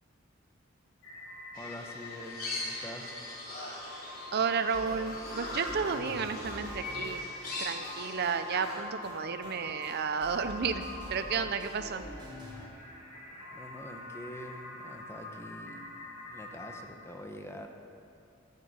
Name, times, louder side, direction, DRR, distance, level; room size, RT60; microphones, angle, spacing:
sound 1, 1.0-16.8, left 2 dB, 85° left, 3.6 m, -46 dB
sound 2, 1.5-8.8, left 2 dB, 50° left, 3.1 m, -41 dB
voice 1, 1.5-3.2 13.5-15.9 16.3-17.7, equal, 15° left, 3 dB, 1.0 m, -45 dB
voice 2, 4.3-7.2 7.6-10.8 11.1-12.0, right 6 dB, 55° right, 10 dB, 0.5 m, -32 dB
sound 3, 4.7-12.7, equal, 25° right, 2.8 m, -46 dB
13.5 x 6.6 x 8.0 m, 2.5 s
head